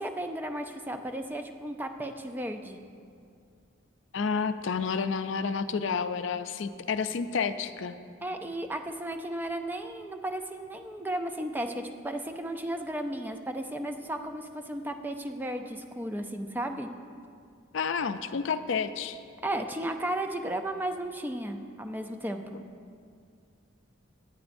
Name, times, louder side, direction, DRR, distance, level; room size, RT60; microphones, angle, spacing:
voice 1, 0.0-2.8 8.2-16.9 19.4-22.6, right 1 dB, 10° right, 5 dB, 0.4 m, -34 dB
voice 2, 4.1-7.9 17.7-19.2 22.5-22.6, left 5 dB, 70° left, 11 dB, 0.4 m, -30 dB
17.0 x 10.5 x 2.6 m, 2.3 s
head